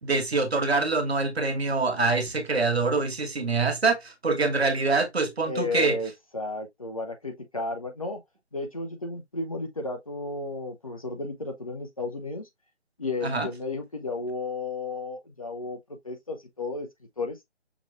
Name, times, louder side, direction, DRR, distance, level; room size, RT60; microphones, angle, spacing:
voice 1, 0.0-6.0 13.2-13.5, right 3 dB, 60° right, 1.2 m, -25 dB
voice 2, 5.4-8.2 8.5-12.5 13.0-16.9 17.2-17.4, left 3 dB, 30° left, 0.6 m, -33 dB
6.0 x 3.1 x 2.3 m
figure-of-eight pair, 150°, 35 cm